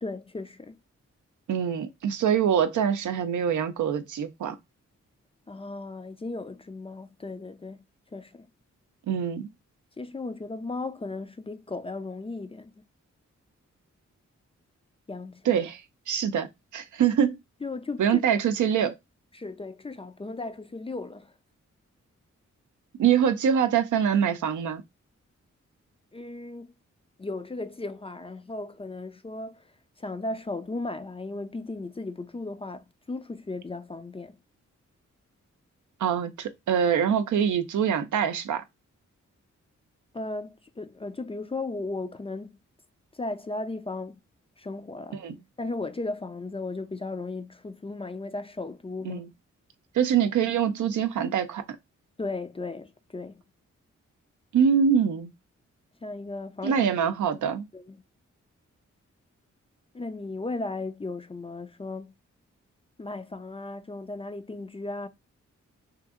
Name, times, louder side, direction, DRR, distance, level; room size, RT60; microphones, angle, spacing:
voice 1, 0.0-0.8 5.5-7.8 8.1-8.5 10.0-12.7 15.1-15.6 17.6-18.2 19.3-21.3 26.1-26.7 27.2-29.7 30.0-34.4 40.1-42.6 43.1-44.2 44.6-45.2 45.6-49.2 52.2-53.4 56.0-56.9 57.7-58.0 59.9-62.1 63.0-65.1, left 2 dB, 20° left, 0.4 m, -36 dB
voice 2, 1.5-4.6 9.1-9.5 15.5-15.8 16.1-16.5 16.7-17.4 18.0-19.0 23.0-24.8 36.0-38.6 45.2-45.4 49.0-49.3 49.9-51.6 54.5-55.3 56.6-57.7, right 8 dB, 75° right, 0.5 m, -24 dB
2.9 x 2.6 x 2.4 m
cardioid pair, 50°, 30 cm